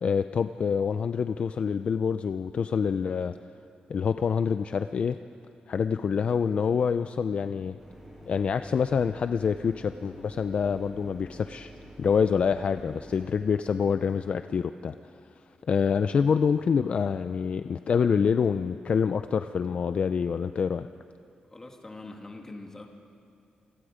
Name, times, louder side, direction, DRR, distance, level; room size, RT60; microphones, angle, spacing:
voice 1, 0.0-3.4 3.9-5.2 5.7-7.8 8.3-11.7 12.0-15.0 15.7-20.9, left 6 dB, 45° left, 10 dB, 0.4 m, -26 dB
Mechanisms, 7.8-13.3, equal, 10° right, 5.7 m, -48 dB
voice 2, 21.5-22.9, left 2 dB, 20° left, 3 dB, 1.7 m, -43 dB
27.5 x 21.5 x 5.0 m, 2.5 s
wide cardioid pair, 170°, 3 cm